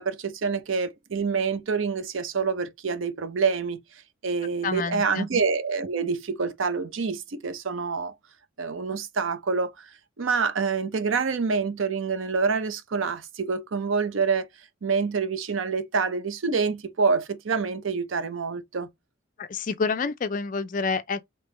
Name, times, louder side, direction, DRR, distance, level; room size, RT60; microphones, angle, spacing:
voice 1, 0.0-3.8 4.2-8.1 8.6-9.9 10.2-14.5 14.8-18.9, right 5 dB, 80° right, 0.6 m, -27 dB
voice 2, 4.6-5.3 19.4-21.2, left 4 dB, 40° left, 0.4 m, -28 dB
3.4 x 2.9 x 3.1 m
head